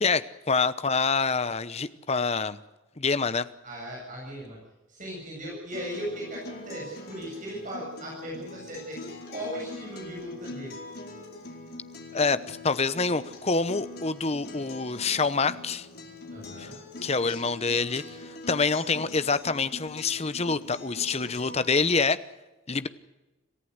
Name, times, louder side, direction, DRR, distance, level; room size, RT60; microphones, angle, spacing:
voice 1, 0.0-2.6 3.0-3.5 12.1-15.9 16.6-16.7 17.0-22.2 22.7-22.9, left 4 dB, 30° left, 14 dB, 0.9 m, -26 dB
voice 2, 3.6-4.6 4.9-9.0 9.3-10.8 16.3-16.8, equal, 40° right, -3 dB, 7.8 m, -37 dB
Acoustic guitar, 5.7-21.7, left 2 dB, 50° left, 4.4 m, -43 dB
27.0 x 15.0 x 8.1 m, 1.1 s
head